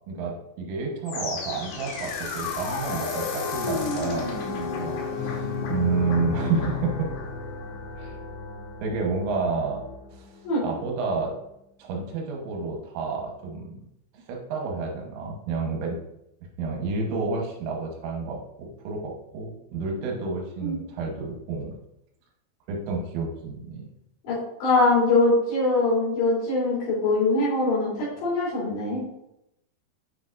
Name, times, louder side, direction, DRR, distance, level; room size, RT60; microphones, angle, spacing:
voice 1, 0.1-7.1 8.0-8.2 8.8-9.8 10.1-10.3 10.6-11.3 11.8-13.8 14.1-16.0 16.6-21.8 22.7-23.8, right 4 dB, 80° right, 0 dB, 3.5 m, -30 dB
sound 1, 1.1-10.2, left 4 dB, 80° left, 4.1 m, -32 dB
voice 2, 24.3-29.0, left 2 dB, 65° left, -6 dB, 5.2 m, -23 dB
9.1 x 6.1 x 2.5 m, 0.82 s
omnidirectional pair, 5.8 m